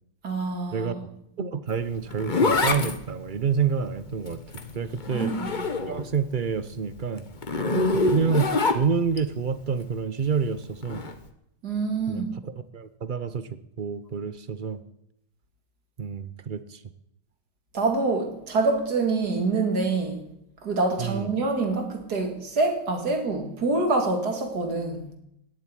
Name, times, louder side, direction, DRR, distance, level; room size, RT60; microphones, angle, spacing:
voice 1, 0.2-1.0 5.1-5.6 7.7-8.0 11.6-12.3 17.7-20.3 20.6-25.1, right 3 dB, 65° right, 3.0 m, -26 dB
voice 2, 1.4-4.4 4.7-5.3 5.9-7.2 8.1-11.0 12.1-12.2 12.7-13.5 13.8-14.8 16.0-16.8 21.0-21.3, right 6 dB, 45° right, 0.7 m, -28 dB
Zipper (clothing), 1.7-6.2 6.5-9.2 10.8-11.1, left 3 dB, 30° left, 1.2 m, -26 dB
17.5 x 7.9 x 9.9 m
omnidirectional pair, 1.9 m